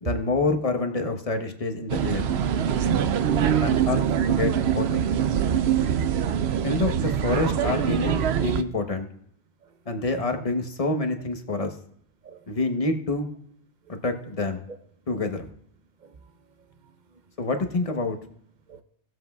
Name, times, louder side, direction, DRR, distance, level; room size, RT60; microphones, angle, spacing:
voice 1, 0.0-2.3 3.6-5.0 6.6-9.1 9.9-11.7 12.5-13.3 13.9-14.6 15.1-15.5 17.4-18.2, left 3 dB, 35° left, 0.9 m, -27 dB
sound 1, 1.9-8.6, right 8 dB, 80° right, 0.8 m, -24 dB
voice 2, 16.0-16.3 16.6-17.2 18.7-18.8, right 4 dB, 50° right, 0.8 m, -41 dB
18.0 x 7.6 x 2.3 m
omnidirectional pair, 1.1 m